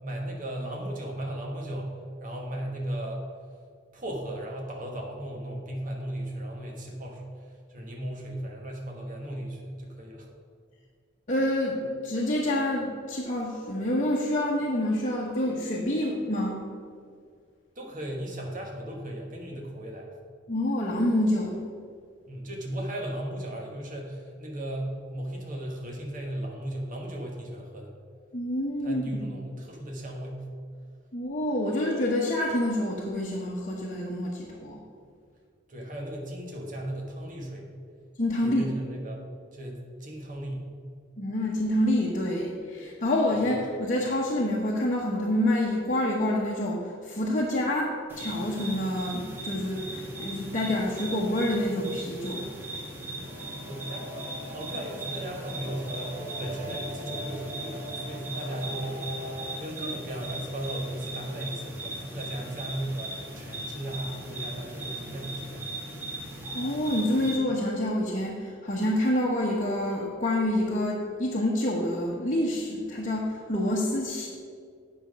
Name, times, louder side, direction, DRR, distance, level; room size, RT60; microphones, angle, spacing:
voice 1, 0.0-1.9 2.2-3.2 3.9-7.2 7.7-10.3 17.7-20.1 22.3-27.9 28.8-30.5 35.7-37.7 38.4-39.2 39.5-40.7 53.7-59.3 59.6-65.6 66.0-66.2, right 1 dB, 45° right, 0 dB, 1.4 m, -36 dB
voice 2, 11.3-16.6 20.5-21.6 28.3-29.3 31.1-34.8 38.2-38.7 41.2-52.5 66.5-74.3, left 1 dB, 40° left, -4 dB, 1.0 m, -27 dB
sound 1, 48.1-67.4, right 1 dB, 10° right, 1.4 m, -38 dB
Singing / Musical instrument, 53.2-59.5, equal, 90° right, 2.2 m, -41 dB
8.9 x 5.8 x 5.2 m, 2.1 s
head